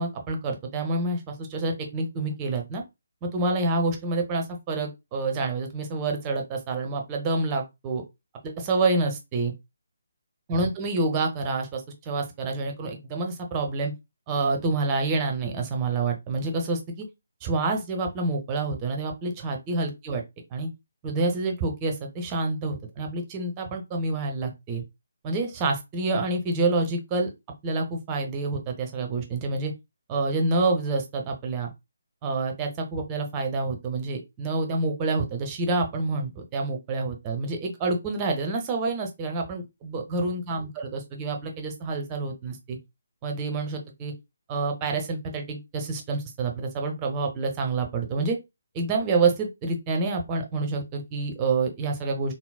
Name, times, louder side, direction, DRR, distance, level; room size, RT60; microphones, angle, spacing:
voice 1, 0.0-2.8 3.2-8.0 8.4-9.5 10.5-13.9 14.3-17.1 17.4-20.2 20.5-20.7 21.0-24.8 25.2-27.3 27.6-29.7 30.1-31.7 32.2-42.8 43.2-44.1 44.5-48.4 48.7-52.3, right 3 dB, 20° right, 0.6 m, -28 dB
3.8 x 2.0 x 2.3 m
figure-of-eight pair, 145°, 0 cm